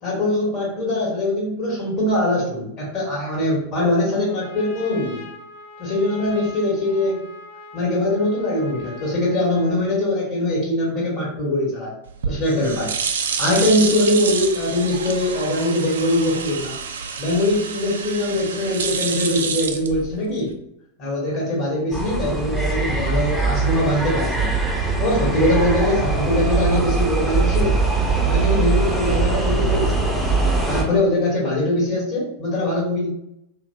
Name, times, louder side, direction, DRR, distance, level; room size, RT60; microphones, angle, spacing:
voice 1, 0.0-5.2 5.8-7.2 7.7-12.0 12.2-12.9 13.4-16.7 17.2-20.5 21.0-24.5 25.0-27.8 28.2-30.1 30.7-33.1, left 1 dB, 45° left, -4 dB, 1.3 m, -22 dB
Trumpet, 4.0-10.0, left 1 dB, 75° left, 0.6 m, -42 dB
sound 1, 12.1-20.5, right 6 dB, 75° right, 0.4 m, -28 dB
sound 2, 21.9-30.8, right 3 dB, ahead, 0.8 m, -21 dB
2.8 x 2.5 x 2.8 m, 0.77 s
figure-of-eight pair, 95°, 0 cm